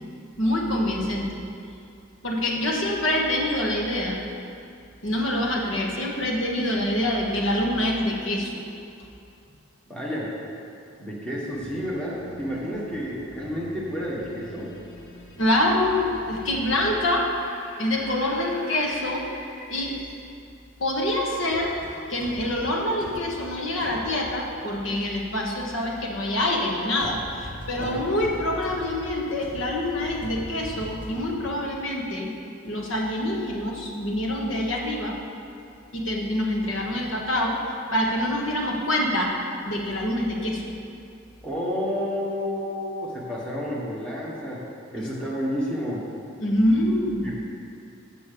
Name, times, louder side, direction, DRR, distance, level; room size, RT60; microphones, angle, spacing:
voice 1, 0.4-1.4 2.2-4.2 5.0-8.5 15.4-17.3 17.8-19.3 19.7-19.9 20.8-21.7 22.1-32.3 32.6-35.2 35.9-37.6 37.9-39.3 39.6-40.6 45.0-45.1 46.4-47.3, left 1 dB, 70° left, -1 dB, 1.3 m, -25 dB
voice 2, 9.9-10.3 11.0-14.7 27.8-28.0 41.4-44.6 44.9-46.0 47.2-47.3, equal, 5° left, -7 dB, 1.5 m, -30 dB
sound 1, 11.5-17.0, left 2 dB, 85° left, 1.1 m, -45 dB
Screaming / Screech, 17.0-20.3 21.2-22.3, equal, 40° left, 2.0 m, -45 dB
sound 2, 21.5-22.7 23.0-23.4 23.8-26.3 26.6-26.7 27.0-31.4, left 1 dB, 25° left, 1.7 m, -42 dB
7.0 x 6.7 x 6.7 m, 2.5 s
head